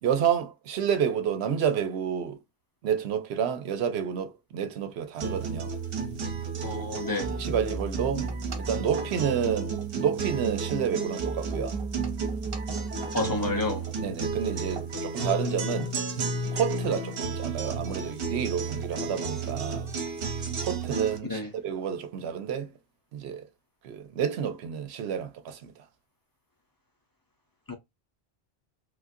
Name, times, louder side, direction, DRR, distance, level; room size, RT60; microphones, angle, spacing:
voice 1, 0.0-2.4 2.8-5.7 7.3-11.8 13.2-13.3 14.0-15.9 16.5-19.9 20.6-22.7 23.1-23.5 23.8-25.7, right 8 dB, 90° right, 0.9 m, -29 dB
sound 1, 5.2-21.2, right 4 dB, 65° right, 0.9 m, -32 dB
voice 2, 6.6-7.3 13.1-13.9 21.3-21.5 27.7-27.8, left 2 dB, 25° left, 0.7 m, -30 dB
3.2 x 2.5 x 2.6 m
omnidirectional pair, 1.1 m